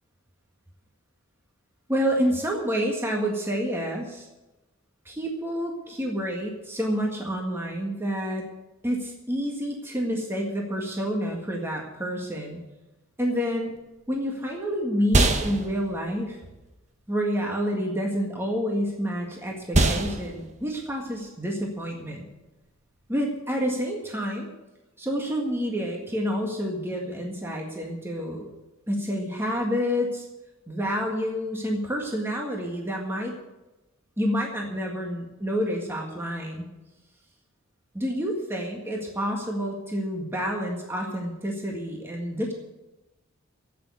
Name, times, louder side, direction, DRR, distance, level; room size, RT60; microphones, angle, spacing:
voice 1, 1.9-4.3 5.1-8.5 8.8-12.6 13.2-13.7 14.1-16.4 17.1-22.3 23.1-24.5 25.0-28.5 28.9-30.3 30.7-33.4 34.2-36.7 37.9-42.5, equal, 10° right, 0 dB, 1.7 m, -28 dB
sound 1, 13.8-23.4, right 2 dB, 35° right, 1.2 m, -29 dB
12.5 x 8.7 x 9.5 m, 1.0 s
head